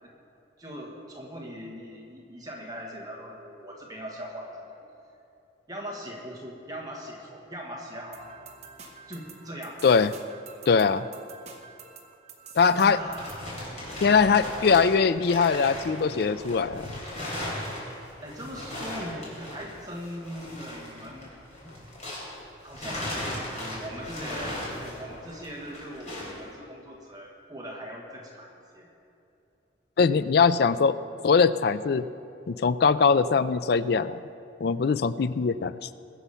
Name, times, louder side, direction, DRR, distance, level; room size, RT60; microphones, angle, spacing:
voice 1, 0.6-4.8 5.7-8.2 9.1-9.8 12.7-13.5 18.2-21.3 22.6-28.9, equal, 20° right, -2 dB, 1.5 m, -40 dB
sound 1, 8.1-13.5, right 5 dB, 35° right, 1.1 m, -48 dB
voice 2, 10.7-11.1 12.6-13.0 14.0-17.0 30.0-31.0 31.2-32.1 32.5-34.2 34.6-35.9, left 5 dB, 55° left, 14 dB, 0.4 m, -22 dB
sound 2, 13.0-22.4 22.7-26.4, left 1 dB, 35° left, 3.9 m, -37 dB
21.0 x 7.0 x 5.6 m, 2.8 s
head